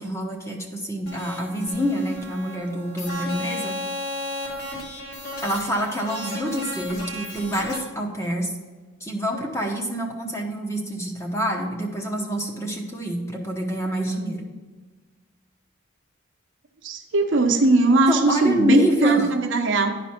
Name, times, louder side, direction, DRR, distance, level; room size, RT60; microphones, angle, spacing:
voice 1, 0.0-3.8 5.4-8.5 9.0-14.5 18.1-19.3, equal, 15° left, 1 dB, 0.9 m, -27 dB
sound 1, 1.0-7.8, left 1 dB, 50° left, 1.8 m, -34 dB
voice 2, 16.8-20.0, right 3 dB, 65° right, 4 dB, 0.8 m, -19 dB
10.5 x 5.1 x 4.4 m, 1.4 s
head